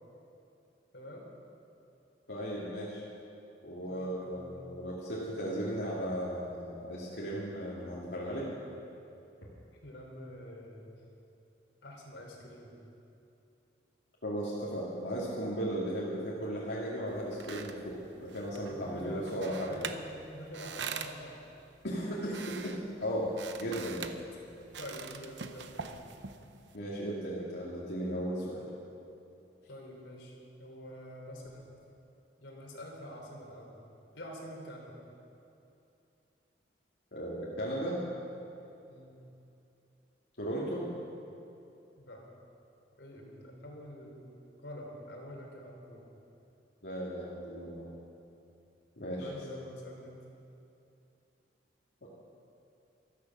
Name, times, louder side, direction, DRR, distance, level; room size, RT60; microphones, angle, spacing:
voice 1, 0.9-1.2 3.9-4.8 9.8-10.9 11.8-12.7 18.7-20.1 20.3-21.3 24.8-26.0 29.7-31.8 32.4-33.8 34.1-34.9 38.9-39.2 42.0-42.2 43.0-44.3 44.6-46.0 49.2-50.2, equal, 90° left, -1 dB, 3.6 m, -46 dB
voice 2, 2.3-3.0 3.6-8.5 14.2-19.8 21.8-23.3 23.6-24.1 26.7-28.6 37.1-38.0 40.4-40.9 46.8-47.9 49.0-49.3 52.0-52.1, equal, 70° left, -6 dB, 2.4 m, -36 dB
sound 1, 17.1-26.8, right 6 dB, 80° right, 0.8 m, -45 dB
14.5 x 14.0 x 6.1 m, 2.8 s
head